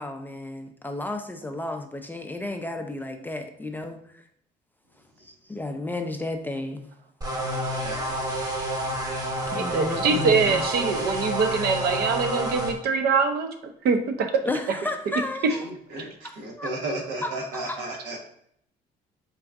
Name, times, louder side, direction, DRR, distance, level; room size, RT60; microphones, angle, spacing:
voice 1, 0.0-4.3 5.2-6.9 9.5-10.7 14.4-15.7 16.2-16.7 17.2-18.0, left 2 dB, 10° left, 5 dB, 0.3 m, -33 dB
sound 1, 7.2-12.7, right 1 dB, 20° right, 0.7 m, -29 dB
voice 2, 9.5-13.5 13.8-14.4 16.0-16.1, right 5 dB, 65° right, 6 dB, 0.6 m, -23 dB
voice 3, 16.4-18.2, right 2 dB, 85° right, 0 dB, 1.0 m, -33 dB
4.0 x 2.3 x 3.4 m, 0.69 s
cardioid pair, 110°, 17 cm